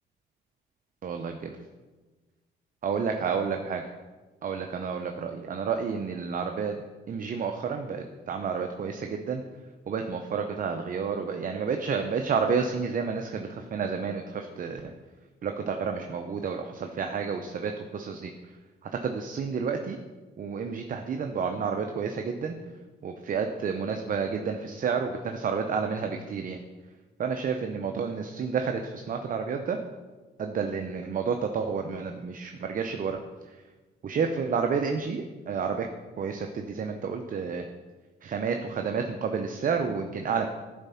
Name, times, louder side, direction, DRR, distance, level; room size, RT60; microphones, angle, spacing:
voice 1, 1.0-1.5 2.8-3.8 4.4-9.4 9.9-14.9 15.4-18.3 18.9-20.0 20.4-22.6 23.0-26.6 27.2-29.8 30.4-33.2 34.0-35.9 36.2-37.7 38.2-40.5, right 6 dB, 45° right, 5 dB, 0.6 m, -30 dB
10.5 x 4.2 x 5.6 m, 1.3 s
cardioid pair, 90°, 20 cm